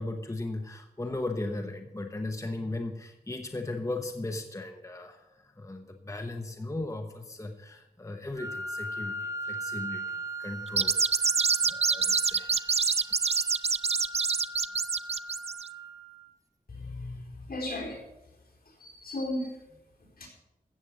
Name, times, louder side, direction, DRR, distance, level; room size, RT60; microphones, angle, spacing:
voice 1, 0.0-12.8, left 2 dB, 20° left, 5 dB, 1.0 m, -37 dB
Wind instrument woodwind instrument, 8.3-16.3, right 1 dB, 20° right, 1.5 m, -39 dB
sound 1, 10.7-15.7, right 5 dB, 40° right, 0.4 m, -26 dB
voice 2, 16.7-18.3 18.6-20.3, left 1 dB, 70° left, -2 dB, 4.2 m, -37 dB
14.5 x 8.2 x 6.2 m, 0.95 s
wide cardioid pair, 95°, 16 cm